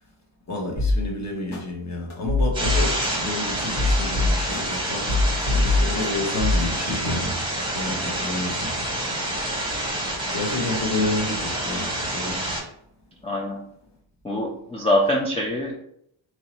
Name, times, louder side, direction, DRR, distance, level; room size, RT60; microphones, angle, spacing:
voice 1, 0.5-7.3 7.7-8.7 10.3-12.4, left 2 dB, 35° left, -2 dB, 1.2 m, -30 dB
sound 1, 0.8-0.9 1.5-1.6 2.1-3.1 3.6-4.7 5.1-6.1 6.4-6.6, left 3 dB, 75° left, 1.3 m, -21 dB
sound 2, 2.5-12.6, right 1 dB, 10° right, 0.9 m, -28 dB
voice 2, 13.2-13.6 14.2-15.7, left 1 dB, 15° left, -1 dB, 0.4 m, -24 dB
3.1 x 2.8 x 4.3 m, 0.70 s
wide cardioid pair, 145°, 47 cm